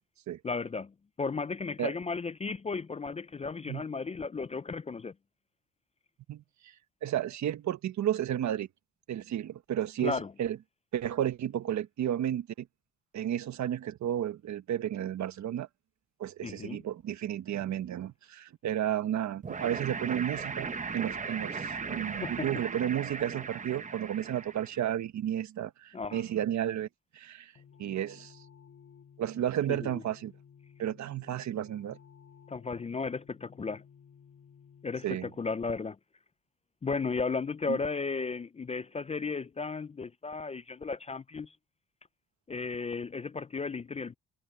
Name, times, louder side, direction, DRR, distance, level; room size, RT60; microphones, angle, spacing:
voice 1, 0.4-5.1 10.0-10.3 16.4-16.8 22.1-22.5 25.9-26.2 29.7-30.0 32.5-33.8 34.8-36.0 36.8-41.6 42.5-44.1, left 4 dB, 20° left, 0.4 m, -35 dB
voice 2, 7.0-8.7 9.1-10.6 10.9-12.7 13.1-15.7 16.2-20.7 20.9-26.9 27.1-27.5 27.8-28.4 29.2-30.3 30.8-32.0 35.0-35.3 37.7-37.8, right 11 dB, 70° right, 1.4 m, -32 dB
sound 1, 19.4-24.9, right 5 dB, 25° right, 0.9 m, -37 dB
sound 2, 27.6-34.9, left 7 dB, 50° left, 6.5 m, -56 dB
cardioid pair, 90°, 30 cm